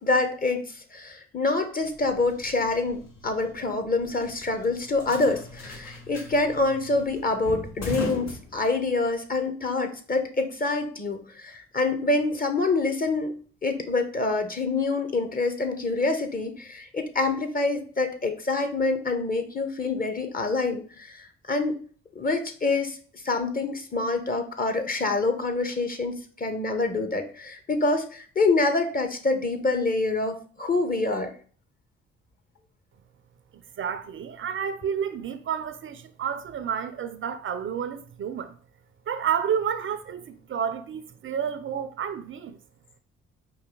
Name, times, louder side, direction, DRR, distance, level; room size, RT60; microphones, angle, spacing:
voice 1, 0.0-13.3 13.6-21.8 22.1-23.0 23.2-31.3, left 3 dB, 30° left, 1.0 m, -26 dB
sound 1, 1.8-9.1, left 1 dB, 65° left, 1.3 m, -40 dB
voice 2, 33.8-38.5 39.1-42.6, right 8 dB, 45° right, 0.5 m, -30 dB
4.8 x 2.8 x 3.7 m
hypercardioid pair, 45°, 29 cm